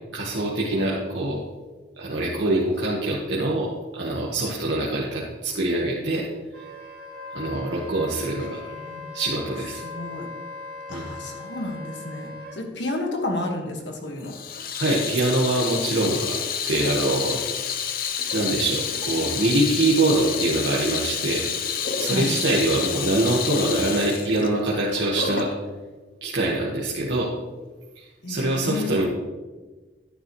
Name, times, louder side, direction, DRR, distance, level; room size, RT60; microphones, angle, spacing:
voice 1, 0.1-1.4 2.0-6.2 7.3-8.6 9.1-9.8 10.9-11.1 14.8-16.4 16.7-17.4 18.3-21.5 21.9-25.5 26.2-27.3 27.9-29.1, right 2 dB, 75° right, -5 dB, 1.4 m, -24 dB
Wind instrument woodwind instrument, 6.5-12.6, left 3 dB, 50° right, 2.5 m, -39 dB
voice 2, 8.7-9.1 9.8-10.3 10.9-14.3 22.1-22.3 28.2-29.0, left 2 dB, 75° left, 2 dB, 1.6 m, -31 dB
Water tap faucet / Sink (filling or washing), 14.2-25.6, left 7 dB, 50° left, 0.7 m, -29 dB
11.0 x 9.4 x 3.1 m, 1.3 s
head